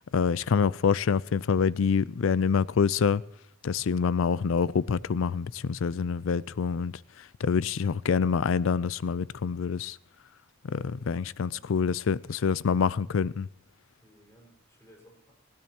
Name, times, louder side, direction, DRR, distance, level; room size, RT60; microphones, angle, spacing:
voice 1, 0.1-3.2 3.6-10.0 10.6-13.5, left 6 dB, 80° left, 0.4 m, -26 dB
voice 2, 11.4-11.7 14.0-15.3, equal, 15° left, 5.1 m, -58 dB
19.0 x 16.0 x 2.9 m
head